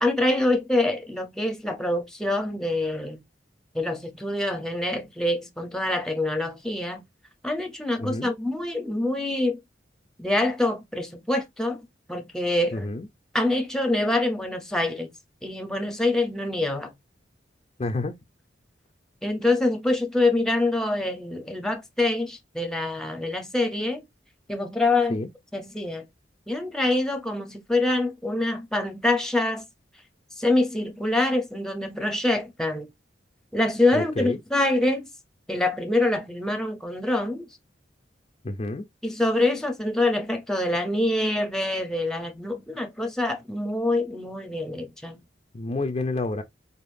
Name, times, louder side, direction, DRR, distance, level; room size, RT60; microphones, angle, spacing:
voice 1, 0.0-3.2 3.7-7.1 7.4-9.6 10.2-11.8 12.1-12.9 13.3-15.1 15.4-16.9 19.2-24.0 24.5-25.2 25.5-26.0 26.5-29.6 30.4-32.9 33.5-35.1 35.5-37.5 39.0-45.2, left 2 dB, 5° left, 0.7 m, -25 dB
voice 2, 12.7-13.1 17.8-18.2 25.1-25.3 33.9-34.4 38.4-38.9 45.5-46.4, left 2 dB, 30° left, 0.4 m, -29 dB
4.1 x 3.5 x 2.6 m
head